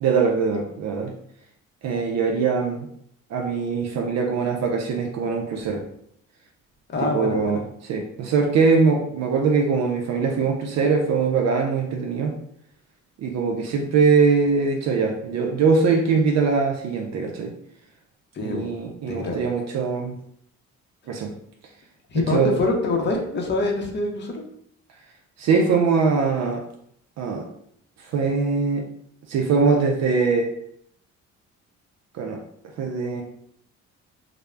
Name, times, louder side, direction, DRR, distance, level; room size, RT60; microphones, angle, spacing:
voice 1, 0.0-1.1 1.8-2.9 3.3-5.8 7.0-7.6 7.9-12.4 13.2-17.5 18.4-20.2 21.1-21.3 22.1-22.5 25.4-26.6 27.2-27.5 28.0-28.9 29.3-30.5 32.1-32.4 32.8-33.2, right 5 dB, 60° right, 2 dB, 0.4 m, -22 dB
voice 2, 6.9-7.6 18.3-18.7 19.1-19.4 22.1-24.4, left 2 dB, 35° left, 1 dB, 0.6 m, -25 dB
2.2 x 2.0 x 3.2 m, 0.69 s
cardioid pair, 90°, 30 cm